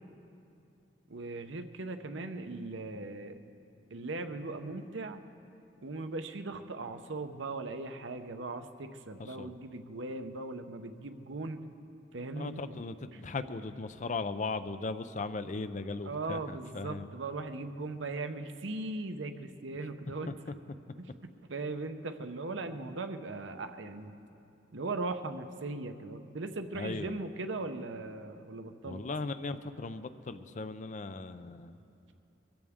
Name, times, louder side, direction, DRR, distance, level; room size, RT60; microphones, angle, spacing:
voice 1, 1.1-3.4 3.9-5.2 5.8-11.6 12.1-12.7 13.1-13.2 16.0-20.3 21.0-24.1 24.7-29.0, right 3 dB, 75° right, 7 dB, 0.8 m, -39 dB
voice 2, 9.2-9.5 12.3-17.1 20.3-20.4 26.7-27.2 28.8-31.8, left 3 dB, 40° left, 12 dB, 0.5 m, -38 dB
23.0 x 15.0 x 3.6 m, 2.7 s
head